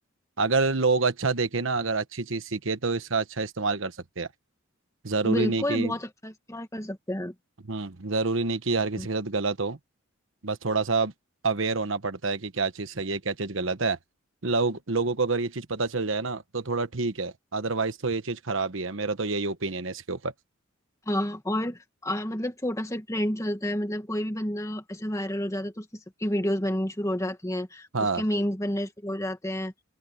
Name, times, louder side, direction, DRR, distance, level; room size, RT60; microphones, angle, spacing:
voice 1, 0.4-4.3 5.0-5.9 7.7-9.8 10.4-11.1 11.4-14.0 14.4-20.3 27.9-28.2, right 3 dB, 65° right, 1.2 m, -27 dB
voice 2, 5.2-7.3 9.0-9.1 21.1-25.9 26.2-29.7, equal, 15° left, 1.8 m, -30 dB
open air
head